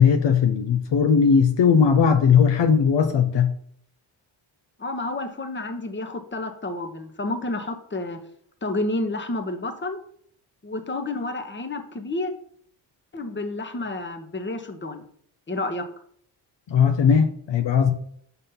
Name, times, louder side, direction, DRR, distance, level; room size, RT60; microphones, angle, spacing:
voice 1, 0.0-3.5 16.7-17.9, left 6 dB, 60° left, 6 dB, 0.8 m, -18 dB
voice 2, 4.8-8.2 8.6-10.0 10.6-12.3 13.1-15.0 15.5-15.9, left 2 dB, 25° left, 6 dB, 1.1 m, -30 dB
5.3 x 4.0 x 5.7 m, 0.62 s
supercardioid pair, 50°, 49 cm